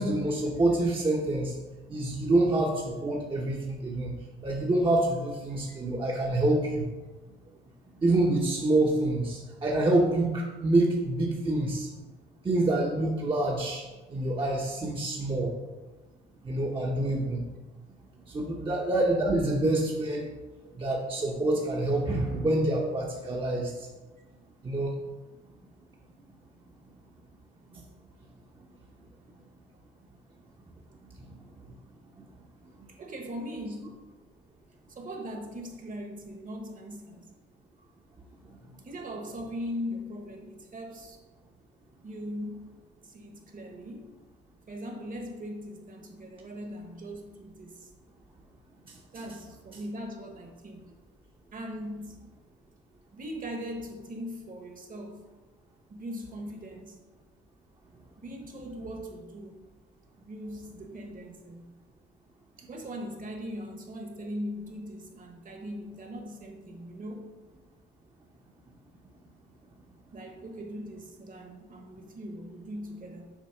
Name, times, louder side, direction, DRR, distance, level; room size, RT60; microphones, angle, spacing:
voice 1, 0.0-1.6 1.9-4.1 4.4-6.9 8.0-11.9 12.4-13.8 14.1-15.5 16.4-17.4 18.3-20.3 20.7-23.9 24.6-24.9 27.7-27.8 32.2-32.3 48.9-49.0, right 2 dB, 25° right, -3 dB, 1.0 m, -27 dB
voice 2, 32.9-33.9 34.9-37.3 37.8-37.9 38.8-41.2 42.0-42.7 43.0-44.1 44.7-47.9 49.1-50.9 51.5-52.3 53.1-55.2 55.9-57.0 58.2-59.6 60.2-61.7 62.6-67.3 70.1-73.3, equal, 40° right, 3 dB, 1.4 m, -40 dB
7.4 x 3.0 x 5.7 m, 1.2 s
cardioid pair, 90°, 20 cm